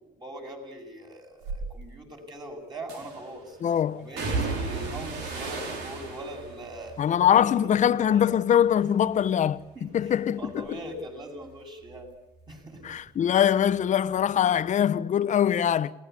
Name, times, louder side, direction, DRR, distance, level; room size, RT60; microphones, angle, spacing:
voice 1, 0.0-3.6 4.0-7.0 7.4-8.3 9.7-12.1 12.5-12.9, right 1 dB, 25° right, 7.8 m, -41 dB
sound 1, 1.4-1.7 2.9-3.4 4.2-8.4 8.7-9.3 9.7-13.0 13.3-14.4 14.7-14.8, right 3 dB, 90° right, 4.7 m, -36 dB
voice 2, 3.6-4.1 7.0-10.8 12.8-15.9, left 9 dB, 45° left, 0.9 m, -23 dB
28.5 x 19.5 x 8.4 m
cardioid pair, 110°, 17 cm